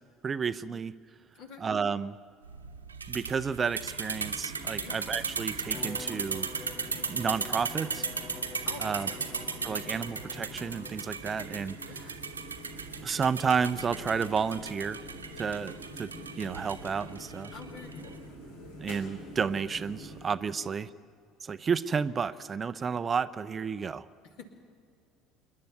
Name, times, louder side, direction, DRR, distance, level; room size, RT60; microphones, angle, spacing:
voice 1, 0.2-0.9 1.6-2.1 3.1-6.5 7.1-8.1 8.8-9.1 9.6-11.8 13.0-15.0 15.4-16.1 16.4-17.5 18.8-20.9 21.4-24.1, right 6 dB, 30° right, 15 dB, 0.5 m, -31 dB
voice 2, 1.3-1.7 4.8-5.1 8.6-9.3 11.8-12.1 17.5-18.2 20.6-20.7 24.2-24.4, left 5 dB, 60° left, 3 dB, 2.6 m, -47 dB
sound 1, 2.4-18.2, right 5 dB, 85° right, 1.1 m, -37 dB
sound 2, 4.1-20.3, equal, 75° left, 3.8 m, -47 dB
Bowed string instrument, 5.7-11.3, left 4 dB, 30° left, 0.9 m, -47 dB
27.0 x 11.0 x 9.5 m, 2.3 s
figure-of-eight pair, 60°, 0 cm